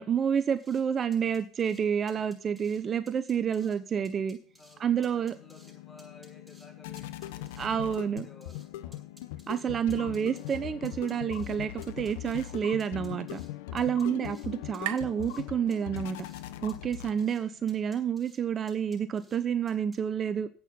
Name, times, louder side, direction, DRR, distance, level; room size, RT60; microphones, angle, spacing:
voice 1, 0.0-4.4 4.8-5.3 7.6-8.3 9.5-13.4 13.7-16.2 16.6-20.5, right 8 dB, 40° right, 13 dB, 0.9 m, -29 dB
sound 1, 0.6-0.8 1.1-1.8 2.1-2.8 3.1-3.8 4.0-4.8 5.0-5.7 6.0-6.7 7.0-8.7 8.9-10.6 10.8-11.6 11.8-12.5 12.8-13.5 13.8-14.5 14.7-15.4 15.7-16.4 16.7-17.4 17.7-18.4 18.7-19.4 19.7-20.0, right 1 dB, 10° right, 7.0 m, -58 dB
voice 2, 4.6-9.1 13.9-14.4, left 3 dB, 25° left, 2 dB, 6.1 m, -55 dB
sound 2, 4.7-17.5, left 13 dB, 80° left, 0.9 m, -41 dB
sound 3, 12.5-16.3, right 15 dB, 70° right, 0.6 m, -44 dB
10.5 x 8.5 x 7.1 m, 0.43 s
hypercardioid pair, 75°, 0 cm